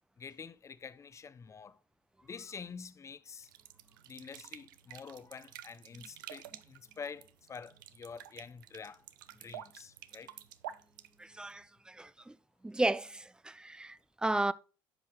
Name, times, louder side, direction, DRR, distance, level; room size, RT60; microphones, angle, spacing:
voice 1, 0.2-1.8 2.2-3.5 4.1-9.0 9.4-10.3, left 6 dB, 30° left, 0.7 m, -47 dB
sound 1, 3.4-11.6, right 12 dB, 85° right, 0.5 m, -50 dB
voice 2, 11.2-12.3 12.6-14.5, right 2 dB, 10° right, 0.5 m, -34 dB
9.8 x 5.6 x 3.0 m
hypercardioid pair, 70°, 10 cm